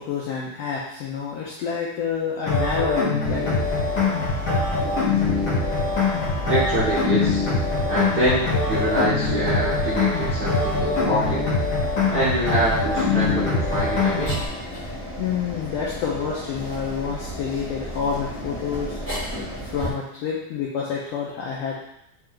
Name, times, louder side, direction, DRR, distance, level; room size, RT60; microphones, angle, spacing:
voice 1, 0.0-3.6 14.7-14.9 15.2-19.0 19.6-21.7, left 6 dB, 80° left, -4 dB, 1.4 m, -28 dB
sound 1, 2.5-14.5, left 3 dB, 60° left, 1.0 m, -23 dB
sound 2, 3.2-19.9, equal, 10° left, 0.5 m, -34 dB
voice 2, 6.5-7.4 7.9-11.5 12.1-14.4, right 1 dB, 75° right, -10 dB, 0.8 m, -25 dB
4.4 x 3.3 x 3.7 m, 0.79 s
omnidirectional pair, 3.4 m